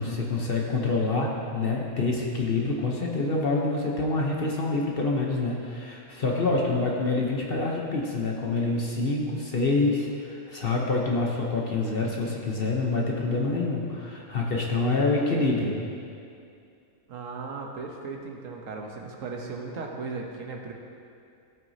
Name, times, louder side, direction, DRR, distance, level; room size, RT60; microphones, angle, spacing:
voice 1, 0.0-15.8, left 3 dB, 45° left, -2 dB, 1.0 m, -26 dB
voice 2, 17.1-20.7, right 4 dB, 65° right, 1 dB, 1.2 m, -36 dB
15.5 x 6.1 x 2.7 m, 2.5 s
omnidirectional pair, 1.5 m